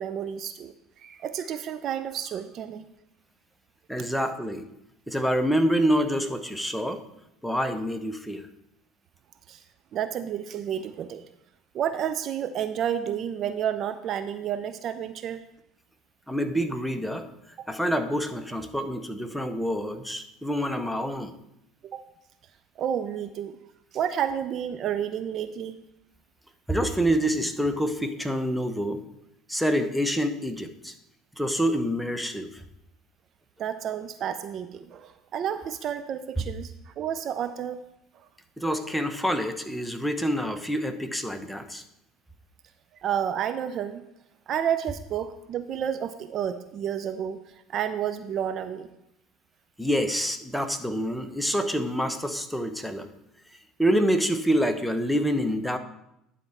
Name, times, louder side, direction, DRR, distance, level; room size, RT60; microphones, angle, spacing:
voice 1, 0.0-2.9 4.0-4.1 9.5-9.6 9.9-11.2 11.7-15.4 17.6-17.7 21.8-22.0 22.8-23.6 23.9-25.8 33.6-37.8 38.1-38.3 43.0-44.0 44.5-48.9, right 9 dB, 50° right, 11 dB, 0.5 m, -31 dB
voice 2, 3.9-4.7 5.1-7.0 7.4-8.5 16.3-17.3 17.7-21.3 26.7-29.0 29.5-30.9 31.4-32.6 38.6-41.8 49.8-53.1 53.8-55.8, equal, ahead, 7 dB, 1.0 m, -27 dB
10.5 x 4.3 x 5.7 m, 0.83 s
hypercardioid pair, 70°, 0 cm